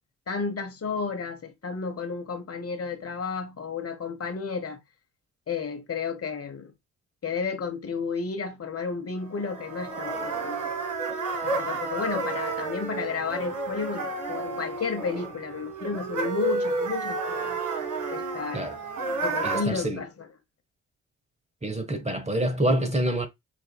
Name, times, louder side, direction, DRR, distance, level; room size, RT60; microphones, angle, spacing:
voice 1, 0.3-4.8 5.5-6.7 7.2-10.9 11.4-17.6 18.1-18.7 19.2-20.3, left 5 dB, 40° left, 1.1 m, -32 dB
sound 1, 9.3-19.6, right 3 dB, 55° right, 1.7 m, -31 dB
voice 2, 19.4-20.0 21.6-23.3, right 1 dB, 15° right, 1.0 m, -26 dB
6.0 x 2.5 x 2.3 m
hypercardioid pair, 45°, 37 cm